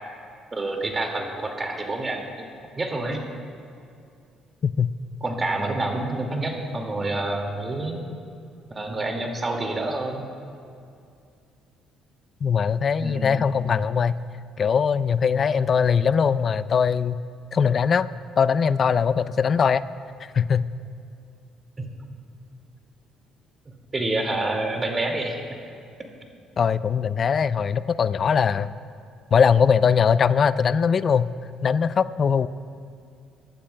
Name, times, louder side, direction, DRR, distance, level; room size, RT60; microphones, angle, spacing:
voice 1, 0.5-2.5 2.8-3.2 5.2-8.0 8.7-10.2 13.0-13.4 21.8-21.9 23.9-25.4, right 2 dB, 25° right, 2 dB, 2.1 m, -28 dB
voice 2, 12.4-14.2 14.6-17.2 17.5-18.1 18.4-19.9 20.2-20.7 26.6-28.7 29.3-31.3 31.6-32.5, left 6 dB, 45° left, 15 dB, 0.4 m, -21 dB
24.0 x 11.5 x 2.2 m, 2.4 s
supercardioid pair, 80°, 0 cm